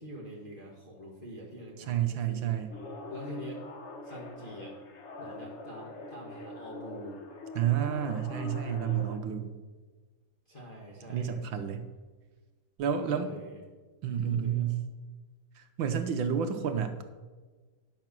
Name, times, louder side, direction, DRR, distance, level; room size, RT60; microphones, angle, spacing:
voice 1, 0.0-2.5 3.1-3.6 4.0-4.7 5.2-7.2 10.5-11.3 13.0-13.6 14.2-14.7, equal, 25° left, -5 dB, 1.5 m, -45 dB
voice 2, 1.8-2.7 7.5-9.5 11.1-11.8 12.8-13.3 14.0-14.8 15.6-17.0, right 8 dB, 70° right, 7 dB, 1.4 m, -30 dB
sound 1, 2.7-9.2, left 2 dB, 60° left, 0.7 m, -43 dB
10.5 x 5.8 x 6.0 m, 1.4 s
omnidirectional pair, 2.4 m